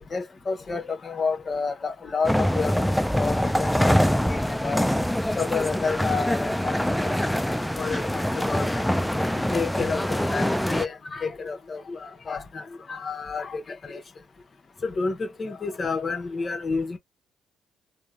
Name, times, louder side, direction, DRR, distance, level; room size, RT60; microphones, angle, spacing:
voice 1, 0.1-2.9 3.2-4.0 4.3-4.8 5.4-6.8 7.0-7.1 7.8-8.8 9.5-14.0 14.8-17.0, left 4 dB, 35° left, 0.8 m, -30 dB
sound 1, 2.2-10.9, equal, 5° left, 0.3 m, -24 dB
3.2 x 2.1 x 2.5 m
cardioid pair, 90°, 0 cm